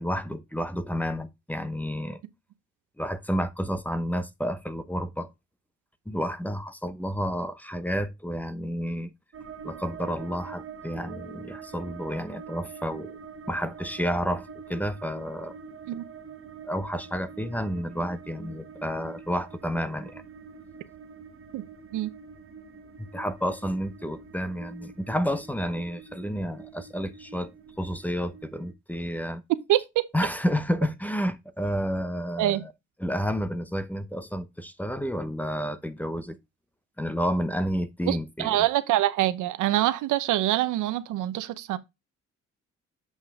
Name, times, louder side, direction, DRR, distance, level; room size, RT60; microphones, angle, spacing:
voice 1, 0.0-2.2 3.0-5.3 6.1-9.1 9.6-13.2 13.5-15.6 16.6-20.2 23.0-27.5 27.8-29.4 30.1-32.7 33.0-36.4 37.0-38.6, equal, 5° left, 0.8 m, -30 dB
sound 1, 9.3-28.7, right 6 dB, 45° right, 1.1 m, -45 dB
voice 2, 29.7-30.1 32.4-32.6 38.1-41.8, right 14 dB, 90° right, 0.8 m, -25 dB
8.0 x 5.5 x 3.5 m
cardioid pair, 90°, 30 cm